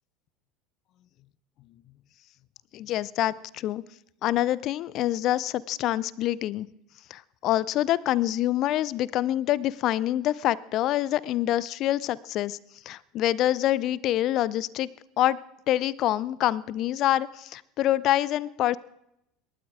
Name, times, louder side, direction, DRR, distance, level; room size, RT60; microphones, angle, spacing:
voice 1, 2.7-3.8 4.2-6.7 7.1-12.6 12.9-14.9 15.2-15.4 15.7-18.8, left 13 dB, 45° left, 23 dB, 0.5 m, -26 dB
28.0 x 12.5 x 3.7 m, 0.81 s
figure-of-eight pair, 70°, 0 cm